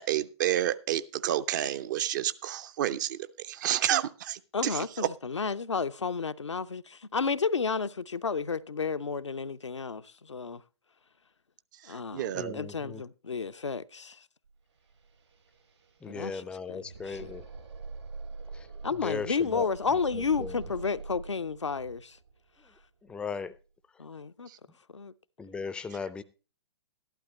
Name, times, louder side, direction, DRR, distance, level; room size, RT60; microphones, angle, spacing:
voice 1, 0.0-3.2 3.4-5.1 12.1-12.6, right 12 dB, 40° right, 0.6 m, -29 dB
voice 2, 4.5-10.6 11.9-14.2 16.1-17.3 18.8-22.2 24.0-24.5 24.9-25.1, left 5 dB, 80° left, 0.6 m, -32 dB
voice 3, 12.3-13.0 16.0-17.4 18.5-18.7 19.0-19.7 20.1-20.6 23.0-23.5 25.4-26.2, left 5 dB, 5° left, 0.5 m, -37 dB
sound 1, 14.4-14.5 14.7-23.6, right 4 dB, 70° right, 3.2 m, -45 dB
13.0 x 11.5 x 3.1 m
figure-of-eight pair, 115°, 15 cm